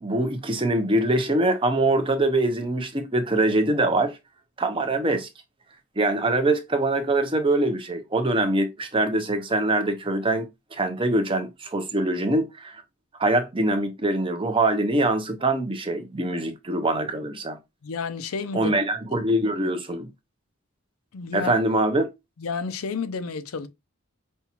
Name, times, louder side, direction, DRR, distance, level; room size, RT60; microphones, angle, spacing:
voice 1, 0.0-4.2 4.6-5.3 6.0-12.8 13.2-17.6 18.5-20.1 21.3-22.1, right 2 dB, 25° right, 0.6 m, -23 dB
voice 2, 17.8-18.7 19.1-19.2 21.1-21.5 22.4-23.7, left 5 dB, 80° left, 0.5 m, -31 dB
5.4 x 2.3 x 2.9 m
head